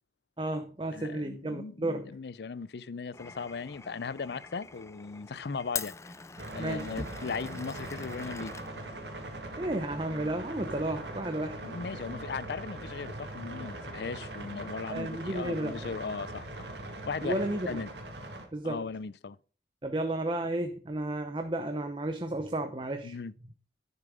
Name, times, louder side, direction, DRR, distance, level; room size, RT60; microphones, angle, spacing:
voice 1, 0.4-2.1 6.6-6.9 9.6-11.6 14.9-15.9 17.2-17.7 18.5-18.8 19.8-23.2, right 1 dB, 30° right, 0.7 m, -32 dB
voice 2, 0.9-6.1 6.5-8.5 11.6-16.7 17.1-17.4 17.7-17.9 18.6-19.4 23.0-23.3, left 5 dB, 70° left, 0.5 m, -38 dB
Glass, 3.1-9.4, left 5 dB, 15° left, 0.4 m, -44 dB
sound 1, 6.4-18.5, right 1 dB, 80° right, 2.3 m, -41 dB
11.0 x 6.7 x 5.0 m
head